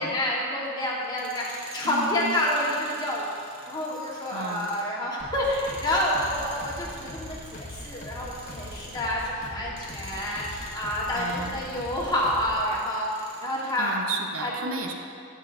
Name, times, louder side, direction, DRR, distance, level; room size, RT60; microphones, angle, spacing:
voice 1, 0.0-3.3 3.7-13.1 13.4-14.0 14.4-14.8, left 1 dB, 20° left, -5 dB, 1.4 m, -28 dB
Tools, 1.0-9.2 9.7-13.9, right 1 dB, 25° right, 1.1 m, -47 dB
voice 2, 1.8-2.4 4.3-4.7 11.1-11.5 13.8-14.9, right 3 dB, 85° right, 3 dB, 0.8 m, -33 dB
sound 1, 5.2-12.7, left 1 dB, 35° left, 1.2 m, -41 dB
16.5 x 6.3 x 2.7 m, 2.5 s
head